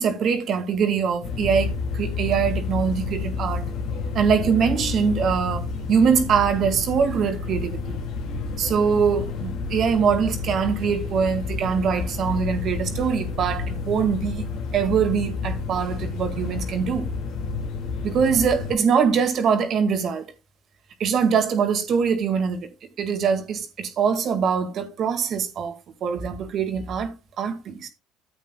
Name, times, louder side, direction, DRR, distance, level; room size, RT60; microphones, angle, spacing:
voice 1, 0.0-3.7 4.1-8.0 8.6-14.5 14.7-17.1 18.0-20.3 21.0-22.7 23.0-27.9, right 6 dB, 55° right, 1.9 m, -23 dB
sound 1, 1.2-18.8, left 4 dB, 70° left, 2.1 m, -30 dB
13.0 x 8.3 x 2.3 m
supercardioid pair, 85°, 0 cm